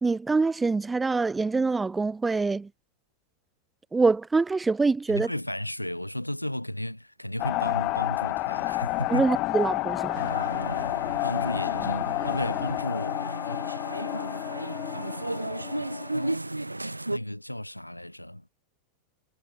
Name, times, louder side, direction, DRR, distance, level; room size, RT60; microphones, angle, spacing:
voice 1, 0.0-2.7 3.9-5.3 9.1-10.2, right 4 dB, 10° right, 0.7 m, -25 dB
voice 2, 5.1-9.3 11.2-13.2 13.5-13.6 16.1-16.4 17.1-18.5, left 1 dB, 90° left, 2.1 m, -34 dB
sound 1, 7.4-16.4, left 21 dB, 40° left, 0.4 m, -30 dB
sound 2, 10.1-17.2, right 2 dB, 85° right, 1.0 m, -34 dB
figure-of-eight pair, 90°, 0 cm